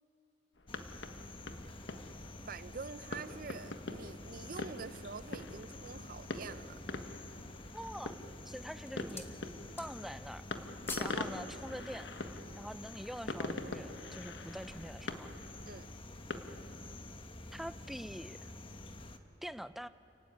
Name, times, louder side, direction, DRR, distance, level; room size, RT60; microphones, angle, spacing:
sound 1, 0.6-17.0, left 2 dB, 85° left, 1.4 m, -44 dB
sound 2, 0.7-19.2, left 2 dB, 30° left, 1.1 m, -49 dB
voice 1, 2.5-6.8 11.1-11.2 15.6-15.9, right 5 dB, 55° right, 0.6 m, -46 dB
sound 3, 4.8-5.5 6.1-6.2 6.6-7.2 7.9-8.3 8.6-9.4 9.6-10.2 10.5-11.2 11.5-11.7, left 3 dB, 15° left, 1.4 m, -47 dB
voice 2, 7.7-8.2 8.5-9.3 9.8-10.4 11.0-12.1 12.6-15.3 17.5-18.5 19.4-19.9, equal, ahead, 0.5 m, -44 dB
30.0 x 15.5 x 9.6 m
head